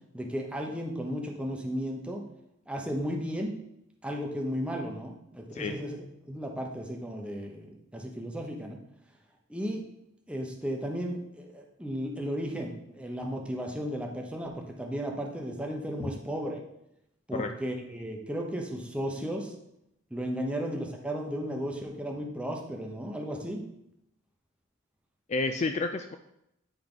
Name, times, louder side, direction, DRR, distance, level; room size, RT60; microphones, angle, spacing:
voice 1, 0.1-2.2 2.7-3.6 4.0-8.8 9.5-9.8 10.3-16.6 17.3-19.5 20.1-23.6, equal, 5° right, 0 dB, 0.9 m, -34 dB
voice 2, 20.3-20.8 25.3-26.2, left 3 dB, 35° left, 6 dB, 0.3 m, -31 dB
8.9 x 4.6 x 3.8 m, 0.83 s
head